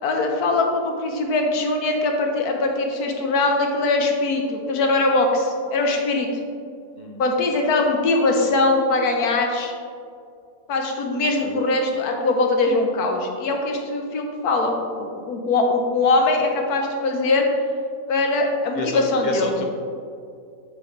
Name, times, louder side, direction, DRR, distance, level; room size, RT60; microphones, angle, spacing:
voice 1, 0.0-6.3 7.2-9.7 10.7-17.5 18.1-19.5, left 2 dB, 70° left, 2 dB, 1.4 m, -21 dB
voice 2, 11.3-11.6 18.7-19.6, left 2 dB, 40° left, 1 dB, 0.7 m, -30 dB
9.1 x 5.5 x 3.2 m, 2.3 s
omnidirectional pair, 1.7 m